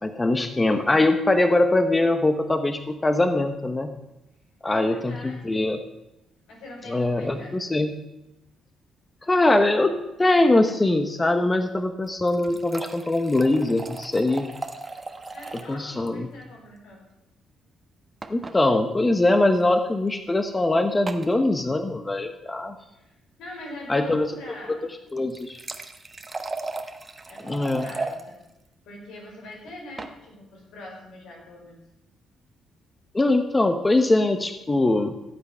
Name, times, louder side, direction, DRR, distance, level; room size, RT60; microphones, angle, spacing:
voice 1, 0.0-3.9 4.6-5.8 6.9-7.9 9.2-14.5 15.7-16.3 18.3-22.7 23.9-24.3 25.1-25.6 27.4-27.9 33.1-35.1, left 2 dB, 20° left, 8 dB, 1.0 m, -22 dB
voice 2, 4.6-5.7 6.5-7.5 15.3-17.0 22.9-24.8 27.3-28.4 28.8-31.8, left 1 dB, 85° left, -1 dB, 5.0 m, -42 dB
sound 1, 12.0-15.8 16.1-16.2 16.4-16.5 18.2-18.6 19.5-19.7 21.1-21.3 25.1-28.2 29.7-30.2, right 3 dB, 25° right, 1.2 m, -36 dB
15.5 x 8.2 x 5.6 m, 0.91 s
cardioid pair, 90°, 0 cm